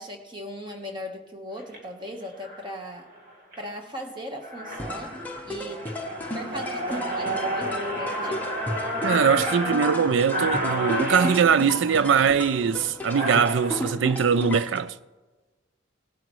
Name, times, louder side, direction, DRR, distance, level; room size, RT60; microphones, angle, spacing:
voice 1, 0.0-3.1 3.6-5.9 6.3-8.5, equal, 25° right, 1.3 m, -38 dB
sound 1, 1.6-1.8 2.4-2.7 3.2-3.6 4.0-4.1 4.4-13.8, equal, 50° right, 3.0 m, -31 dB
sound 2, 4.7-14.8, left 1 dB, 10° left, 0.8 m, -35 dB
voice 2, 9.0-14.9, right 6 dB, 75° right, 0.4 m, -22 dB
18.0 x 12.0 x 3.2 m
head